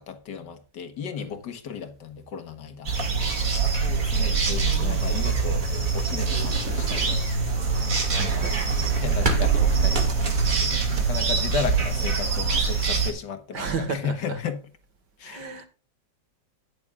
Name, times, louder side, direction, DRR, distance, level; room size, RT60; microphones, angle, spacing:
voice 1, 0.0-2.9 3.9-5.6 5.9-7.2 8.3-14.6 15.2-15.5, left 6 dB, 75° left, 1.9 m, -35 dB
sound 1, 2.9-13.1, right 5 dB, 50° right, 2.5 m, -24 dB
voice 2, 3.2-3.6 8.1-8.6 13.5-14.4 15.2-15.6, right 4 dB, 70° right, 2.3 m, -33 dB
sound 2, 6.5-11.9, right 2 dB, 25° right, 1.9 m, -36 dB
13.5 x 9.6 x 2.4 m
omnidirectional pair, 1.9 m